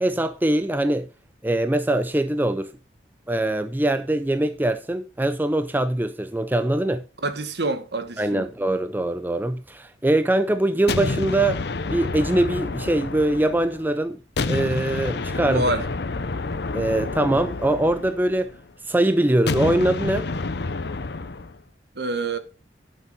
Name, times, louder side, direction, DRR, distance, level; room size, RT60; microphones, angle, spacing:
voice 1, 0.0-1.1 1.4-2.7 3.3-7.0 8.2-11.6 11.9-14.2 14.5-15.6 16.7-18.5 18.9-20.3, right 1 dB, 10° right, 0.5 m, -22 dB
voice 2, 7.2-8.5 15.3-15.9 21.9-22.4, right 2 dB, 65° right, 1.4 m, -27 dB
sound 1, 10.9-13.9 14.4-18.6 19.5-21.6, left 3 dB, 65° left, 0.7 m, -29 dB
12.0 x 6.8 x 4.2 m
head